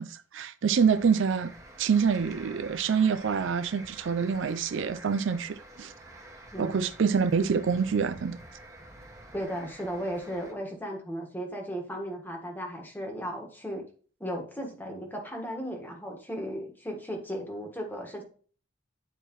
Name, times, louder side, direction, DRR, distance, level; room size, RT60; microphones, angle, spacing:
voice 1, 0.0-1.5 1.8-5.9 6.6-8.4, right 6 dB, 65° right, 0.4 m, -26 dB
sound 1, 0.7-10.5, right 1 dB, 15° right, 1.2 m, -48 dB
voice 2, 9.3-13.8 14.2-18.2, equal, 10° left, 1.4 m, -36 dB
9.9 x 4.5 x 3.0 m
head